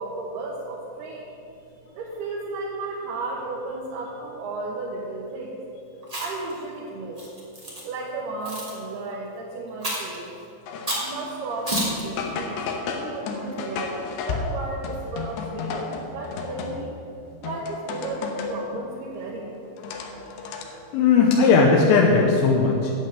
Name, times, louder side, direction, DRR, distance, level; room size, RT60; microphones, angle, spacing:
voice 1, 0.0-1.3 1.9-5.6 6.2-7.2 7.8-10.4 11.0-17.0 17.4-19.5, right 2 dB, 70° right, -4 dB, 2.6 m, -34 dB
Chewing mastication, 6.0-6.5 7.2-7.8 8.4-8.7 9.8-10.2 10.9-11.1 11.7-12.0, equal, 20° right, 0.9 m, -29 dB
sound 1, 10.7-11.8 12.2-17.0 17.4-18.7 19.1-20.6, left 4 dB, 75° left, 2.8 m, -33 dB
voice 2, 20.9-22.9, left 4 dB, 90° left, -1 dB, 3.6 m, -17 dB
9.3 x 8.1 x 8.9 m, 2.7 s
omnidirectional pair, 5.9 m